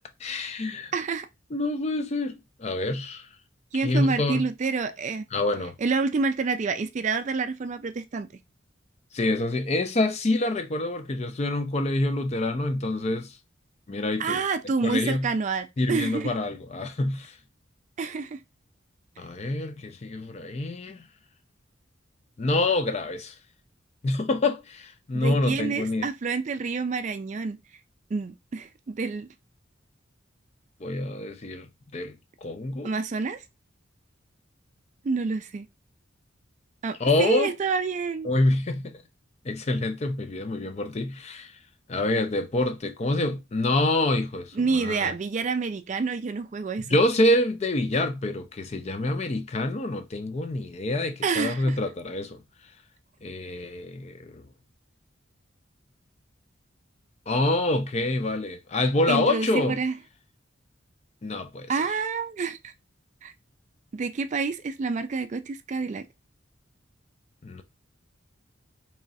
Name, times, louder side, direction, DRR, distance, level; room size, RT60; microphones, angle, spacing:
voice 1, 0.2-0.9 1.5-3.3 3.7-4.5 5.3-5.7 9.1-13.3 13.9-14.4 14.8-15.3 15.8-17.3 19.2-21.0 22.4-23.3 24.0-26.1 30.8-32.2 32.4-32.9 37.0-37.5 38.2-39.0 39.5-41.5 41.9-45.1 46.9-52.4 53.2-54.4 57.3-59.8 61.2-61.7 67.4-67.6, left 2 dB, 35° left, 0.4 m, -26 dB
voice 2, 0.9-1.3 3.7-5.3 5.8-8.3 14.2-16.3 18.0-18.4 25.1-27.6 28.1-29.3 32.8-33.4 35.0-35.7 36.8-38.3 44.6-46.9 51.2-51.8 59.1-59.9 61.7-62.7 63.2-63.3 63.9-66.0, right 4 dB, 40° right, 0.3 m, -28 dB
3.1 x 2.5 x 3.9 m
head